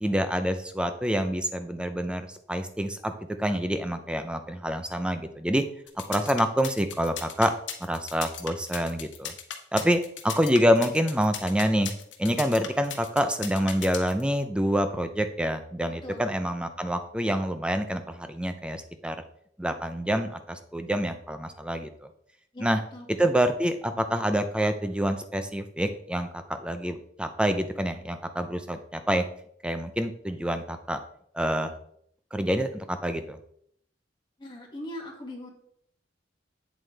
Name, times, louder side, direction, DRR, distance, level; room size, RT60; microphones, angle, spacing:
voice 1, 0.0-3.1 3.4-5.6 6.1-7.5 7.8-9.3 9.7-11.9 12.2-19.2 19.6-22.1 22.6-22.8 23.2-29.3 29.6-31.0 31.3-31.7 32.3-33.4, equal, 5° right, 8 dB, 0.6 m, -27 dB
sound 1, 5.9-14.2, left 9 dB, 80° left, 1.1 m, -37 dB
voice 2, 16.0-16.3 22.5-23.1 34.4-35.5, left 1 dB, 25° left, -1 dB, 2.0 m, -41 dB
8.4 x 7.5 x 3.4 m, 0.67 s
head